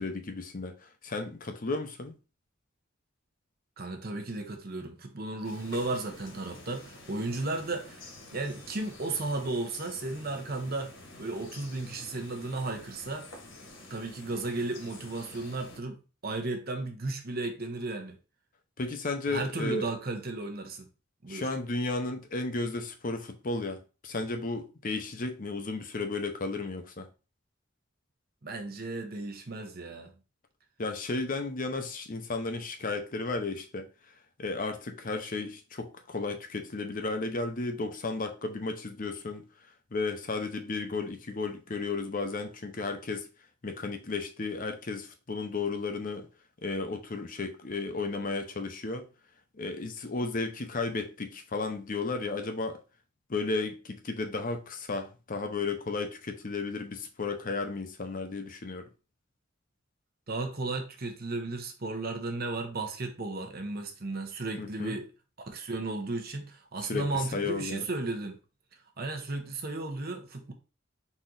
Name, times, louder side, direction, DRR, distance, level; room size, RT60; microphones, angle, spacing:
voice 1, 0.0-2.1 18.8-19.9 21.3-27.1 30.8-33.9 34.4-39.5 39.9-43.3 43.6-46.3 46.6-49.1 49.5-52.8 53.3-58.9 64.6-65.0 66.8-67.8, left 3 dB, 40° left, 0.7 m, -34 dB
voice 2, 3.8-10.9 11.2-13.3 13.9-16.0 16.2-18.2 19.3-20.9 21.2-21.5 28.4-30.1 60.3-65.1 65.4-68.4 69.0-70.5, right 2 dB, 50° right, 0.9 m, -34 dB
sound 1, 5.4-15.8, left 2 dB, 65° left, 1.6 m, -49 dB
4.2 x 3.0 x 3.8 m
head